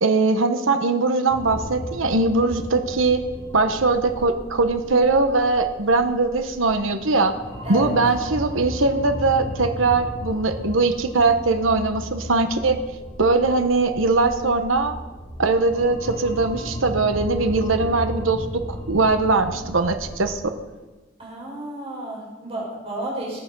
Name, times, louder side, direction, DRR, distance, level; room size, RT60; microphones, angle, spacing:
voice 1, 0.0-3.2 3.5-7.4 7.7-12.8 13.2-15.0 15.4-18.6 18.9-20.5, right 3 dB, 80° right, 7 dB, 1.1 m, -21 dB
sound 1, 1.3-20.3, equal, 30° left, 5.5 m, -35 dB
voice 2, 21.2-23.4, right 1 dB, 30° right, -3 dB, 6.2 m, -31 dB
20.5 x 9.1 x 5.4 m, 1.2 s
head